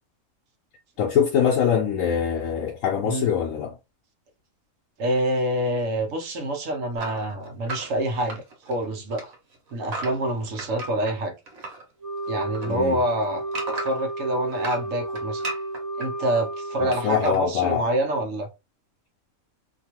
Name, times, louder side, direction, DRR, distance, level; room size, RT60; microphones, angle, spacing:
voice 1, 1.0-3.7 12.7-13.0 16.8-17.9, left 8 dB, 75° left, 1.0 m, -23 dB
voice 2, 5.0-9.3 9.7-11.3 12.3-15.4 16.0-18.5, right 1 dB, 70° right, 1.2 m, -26 dB
sound 1, 6.9-8.8 9.1-11.8 12.2-14.1 14.5-16.1 16.9-17.4, right 2 dB, 90° right, 1.4 m, -35 dB
Wind instrument woodwind instrument, 12.0-17.6, right 1 dB, 20° right, 0.5 m, -33 dB
2.9 x 2.4 x 2.8 m
omnidirectional pair, 1.4 m